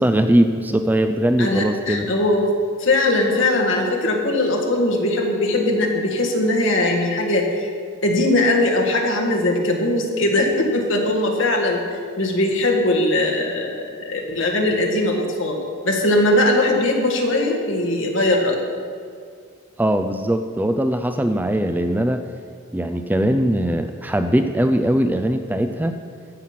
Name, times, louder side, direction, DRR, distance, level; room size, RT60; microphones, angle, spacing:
voice 1, 0.0-2.1 19.8-22.2 22.7-26.0, right 1 dB, 10° right, 7 dB, 0.3 m, -20 dB
voice 2, 1.4-2.5 2.8-7.7 8.0-11.8 12.2-15.6 15.8-18.6, left 1 dB, 60° left, 1 dB, 1.6 m, -20 dB
15.5 x 5.9 x 5.8 m, 2.1 s
head